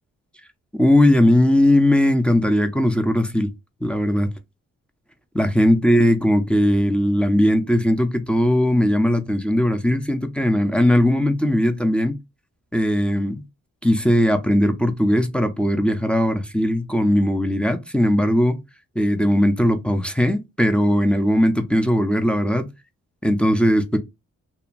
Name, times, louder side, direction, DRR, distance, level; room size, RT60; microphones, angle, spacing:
voice 1, 0.8-3.5 3.8-4.3 5.3-12.2 12.7-13.4 13.8-18.6 19.0-22.7 23.2-24.0, left 1 dB, 5° left, 0.4 m, -19 dB
2.8 x 2.1 x 2.4 m
cardioid pair, 75°, 30 cm